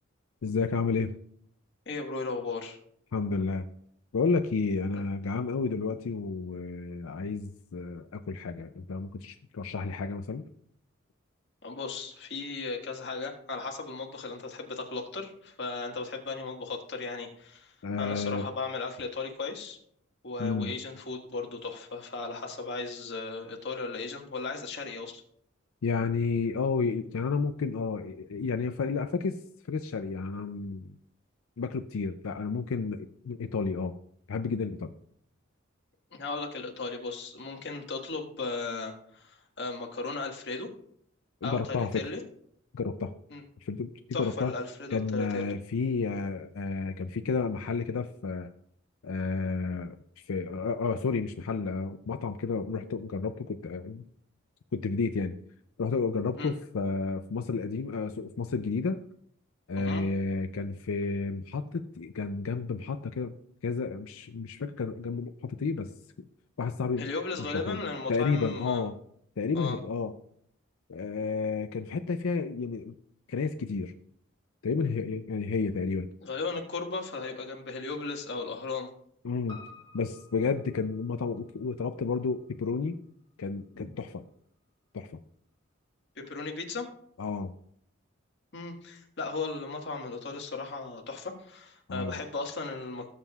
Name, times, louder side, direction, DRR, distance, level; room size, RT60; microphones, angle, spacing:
voice 1, 0.4-1.1 3.1-3.6 4.1-10.4 17.8-18.5 20.4-20.7 25.8-29.4 29.7-30.9 31.6-34.0 34.3-34.9 41.4-42.1 42.7-43.1 43.6-44.5 44.9-48.5 49.0-49.9 50.3-54.0 54.7-55.3 55.8-59.0 59.7-63.3 63.6-65.9 66.6-67.1 67.5-67.8 68.1-69.0 69.4-70.1 70.9-73.0 73.3-73.9 74.6-76.1 79.2-79.6 79.9-83.0 83.4-84.2 84.9-85.2 87.2-87.5 91.9-92.2, left 4 dB, 90° left, 7 dB, 0.5 m, -31 dB
voice 2, 1.8-2.8 4.9-5.0 11.6-19.8 20.2-25.2 36.1-40.7 41.4-42.2 43.3-43.4 44.1-45.5 56.4-56.5 59.8-60.0 67.0-68.8 69.5-69.8 76.2-78.9 83.7-83.9 86.1-86.9 88.5-93.1, left 3 dB, 60° left, 1 dB, 1.7 m, -36 dB
Piano, 79.5-84.0 84.3-84.4, left 3 dB, 25° left, 3.5 m, -54 dB
18.5 x 7.3 x 2.4 m, 0.68 s
head